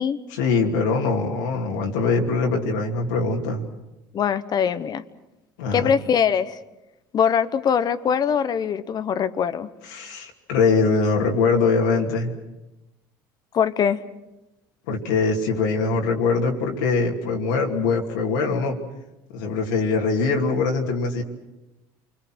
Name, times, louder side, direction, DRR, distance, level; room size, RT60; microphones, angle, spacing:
voice 1, 0.4-3.7 5.6-5.9 9.9-12.3 14.9-18.8 19.3-21.2, left 4 dB, 90° left, 0 dB, 2.7 m, -22 dB
voice 2, 4.1-5.0 5.7-6.6 7.1-9.7 13.5-14.0, left 7 dB, 45° left, 14 dB, 1.1 m, -22 dB
28.5 x 21.5 x 6.2 m, 0.97 s
supercardioid pair, 85°, 9 cm